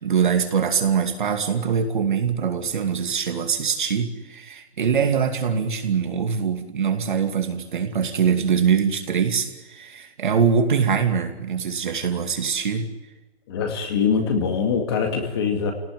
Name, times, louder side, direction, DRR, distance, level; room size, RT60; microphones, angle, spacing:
voice 1, 0.0-12.9, right 6 dB, 50° right, 5 dB, 2.7 m, -23 dB
voice 2, 13.5-15.7, left 6 dB, 25° left, 4 dB, 2.2 m, -23 dB
28.0 x 18.0 x 9.4 m, 1.1 s
hypercardioid pair, 175°, 32 cm